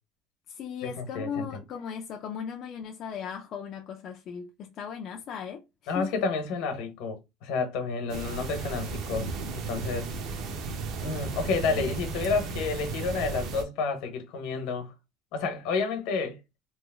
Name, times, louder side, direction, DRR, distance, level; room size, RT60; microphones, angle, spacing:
voice 1, 0.5-6.1 11.7-11.9, left 7 dB, 40° left, 0.4 m, -37 dB
voice 2, 1.1-1.6 5.9-10.1 11.0-14.9 15.3-16.4, left 4 dB, 70° left, 1.0 m, -30 dB
sound 1, 8.1-13.6, right 4 dB, 50° right, 0.6 m, -34 dB
3.1 x 2.1 x 3.4 m
cardioid pair, 175°, 0 cm